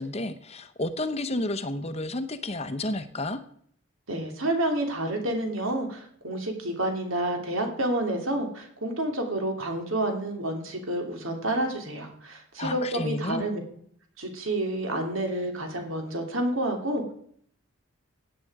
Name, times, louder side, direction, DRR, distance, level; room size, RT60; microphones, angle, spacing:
voice 1, 0.0-3.4 12.6-13.4, left 1 dB, 30° left, 10 dB, 0.9 m, -31 dB
voice 2, 4.1-13.6 14.2-17.1, right 1 dB, 65° right, 3 dB, 2.9 m, -29 dB
16.5 x 9.0 x 4.8 m, 0.63 s
head